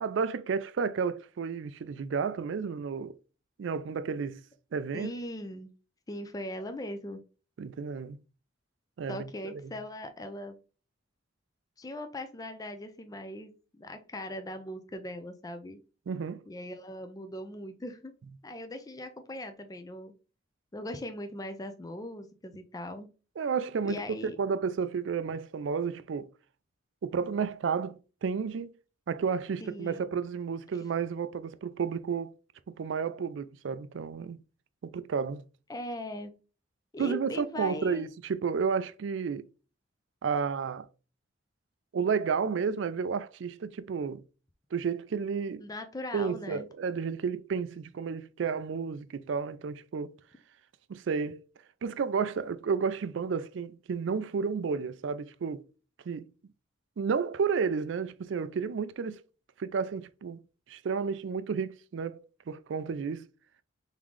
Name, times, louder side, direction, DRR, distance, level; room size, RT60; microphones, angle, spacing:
voice 1, 0.0-3.2 3.6-4.4 4.7-5.1 7.6-8.2 9.0-9.5 16.1-16.4 23.4-26.3 27.0-28.7 29.1-32.3 32.8-34.4 34.8-35.4 37.0-39.5 40.2-40.9 41.9-44.2 44.7-45.6 46.1-50.1 50.9-51.4 51.8-55.7 56.1-56.3 57.0-59.2 59.6-63.3, right 6 dB, 70° right, 0.4 m, -32 dB
voice 2, 4.9-5.7 6.1-7.2 9.1-10.6 11.8-15.8 16.5-18.1 18.4-20.1 20.7-23.1 23.8-24.4 29.6-30.1 35.7-36.3 36.9-38.0 45.6-46.7, left 1 dB, 20° left, 0.5 m, -40 dB
3.8 x 3.6 x 3.1 m
head